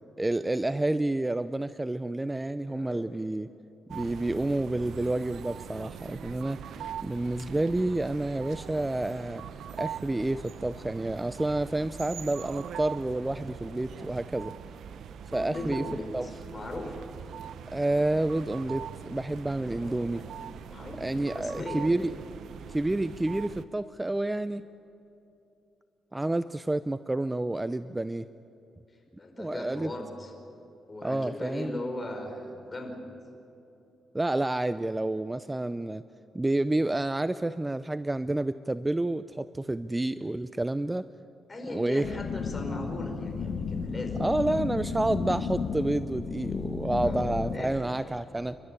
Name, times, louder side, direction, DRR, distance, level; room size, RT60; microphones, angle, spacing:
voice 1, 0.2-3.5 3.9-6.6 7.0-9.4 9.7-14.6 15.3-15.8 16.1-16.3 17.7-20.2 21.0-22.1 22.7-24.7 26.1-28.3 29.4-29.9 31.0-31.8 34.1-36.0 36.3-41.1 41.7-42.1 44.2-48.6, right 2 dB, 15° right, 13 dB, 0.5 m, -29 dB
voice 2, 2.6-3.3 15.3-17.1 19.6-22.1 28.9-30.3 30.9-32.9 41.5-44.2 47.0-47.8, left 2 dB, 30° left, 3 dB, 4.9 m, -39 dB
sound 1, 3.9-23.6, right 8 dB, 75° right, 0.8 m, -42 dB
sound 2, 42.0-47.6, left 5 dB, 60° left, 2.0 m, -33 dB
29.5 x 12.5 x 9.9 m, 2.8 s
cardioid pair, 90°, 0 cm